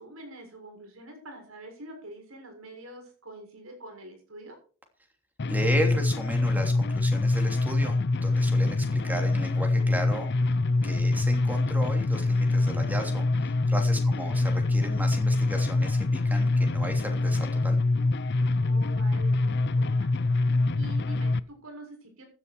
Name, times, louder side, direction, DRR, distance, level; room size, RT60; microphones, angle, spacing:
voice 1, 0.0-4.6 14.0-14.5 18.5-20.1 20.7-22.2, right 1 dB, 90° right, 4 dB, 6.8 m, -46 dB
sound 1, 5.4-21.4, left 2 dB, 50° left, 0.7 m, -25 dB
voice 2, 5.5-10.6 10.8-17.8, right 1 dB, 10° right, 4 dB, 3.0 m, -35 dB
15.5 x 11.0 x 4.6 m, 0.37 s
head